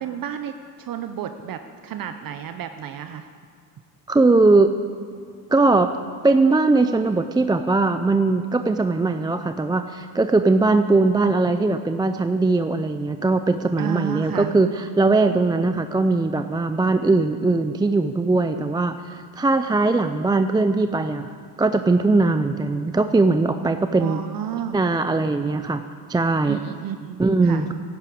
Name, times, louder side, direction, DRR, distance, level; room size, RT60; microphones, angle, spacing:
voice 1, 0.0-0.5 0.8-3.3 13.8-14.5 23.9-24.8 26.4-27.2 27.4-27.6, right 9 dB, 55° right, 8 dB, 0.8 m, -31 dB
voice 2, 4.1-4.7 5.5-6.0 6.2-24.2 24.7-25.8 26.1-26.6 27.2-27.7, right 3 dB, 10° right, 9 dB, 0.4 m, -20 dB
11.0 x 11.0 x 8.4 m, 2.1 s
cardioid pair, 95°, 41 cm